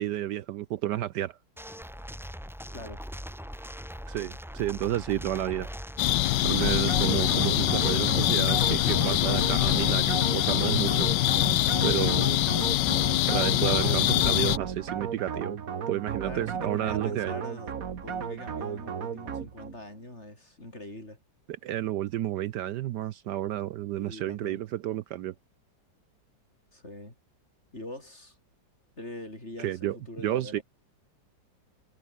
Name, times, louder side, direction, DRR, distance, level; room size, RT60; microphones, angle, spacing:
voice 1, 0.0-1.4 4.1-5.7 6.4-11.1 11.8-12.3 13.3-15.6 15.9-17.3 21.6-25.3 29.6-30.0 30.2-30.6, right 13 dB, 70° right, 1.2 m, -31 dB
sound 1, 1.6-9.9, equal, ahead, 3.2 m, -40 dB
voice 2, 2.7-3.0 13.4-14.0 16.2-17.7 18.0-21.2 24.0-24.6 26.7-27.2 27.7-28.4 29.0-30.6, left 1 dB, 35° left, 7.8 m, -43 dB
sound 2, 6.0-14.6, left 16 dB, 75° left, 1.2 m, -24 dB
sound 3, 6.6-19.8, right 7 dB, 50° right, 1.7 m, -35 dB
omnidirectional pair, 2.0 m